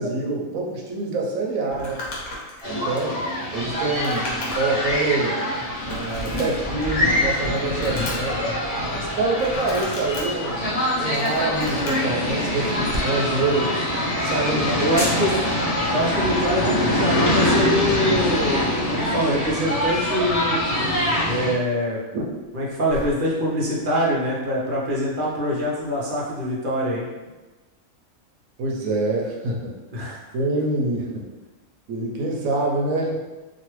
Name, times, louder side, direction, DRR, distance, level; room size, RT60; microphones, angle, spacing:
voice 1, 0.0-2.0 2.7-3.2 3.5-5.4 5.9-8.5 8.9-10.7 11.0-14.8 15.1-15.4 22.1-22.3 28.6-29.7 30.3-31.3 31.9-33.2, right 2 dB, 75° right, -1 dB, 1.0 m, -26 dB
Crumpling crinkling, 1.7-4.9 5.2-5.3 5.9-7.0 7.4-8.4 9.3-10.2 10.9-12.1 12.9-13.1, left 1 dB, 75° left, 1.2 m, -34 dB
sound 1, 2.6-21.5, left 1 dB, 35° left, 0.6 m, -24 dB
sound 2, 9.0-26.5, left 1 dB, 55° left, 1.3 m, -43 dB
voice 2, 14.5-15.3 15.9-20.6 21.3-22.0 22.5-27.1 29.9-30.2, equal, 55° right, -5 dB, 0.6 m, -24 dB
3.0 x 2.4 x 3.0 m, 1.2 s
omnidirectional pair, 1.5 m